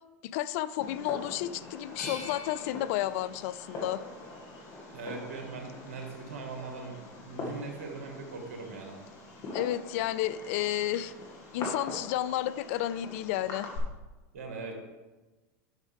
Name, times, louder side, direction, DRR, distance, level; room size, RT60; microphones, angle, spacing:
voice 1, 0.2-4.0 9.5-11.1 11.5-13.7, left 13 dB, 65° left, 17 dB, 0.4 m, -31 dB
Fireworks, 0.8-13.8, left 2 dB, 45° left, 2.2 m, -43 dB
sound 1, 2.0-4.9 5.4-6.3, left 3 dB, 80° left, 1.7 m, -47 dB
voice 2, 4.9-9.0 14.3-14.7, right 4 dB, 75° right, 2 dB, 1.9 m, -40 dB
10.5 x 6.2 x 3.5 m, 1.2 s
hypercardioid pair, 95°, 8 cm